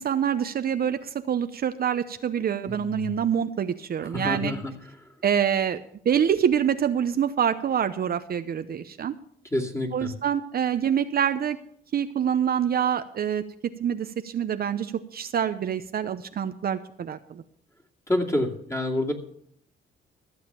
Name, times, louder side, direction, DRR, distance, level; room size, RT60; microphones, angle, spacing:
voice 1, 0.0-4.5 5.2-5.8 6.0-9.1 9.9-11.6 11.9-13.4 13.8-17.4, right 8 dB, 50° right, 9 dB, 0.7 m, -26 dB
voice 2, 2.7-3.2 4.0-4.7 9.5-10.1 18.1-19.1, left 1 dB, 15° left, 1 dB, 2.5 m, -28 dB
14.5 x 7.3 x 7.2 m, 0.68 s
cardioid pair, 90°, 20 cm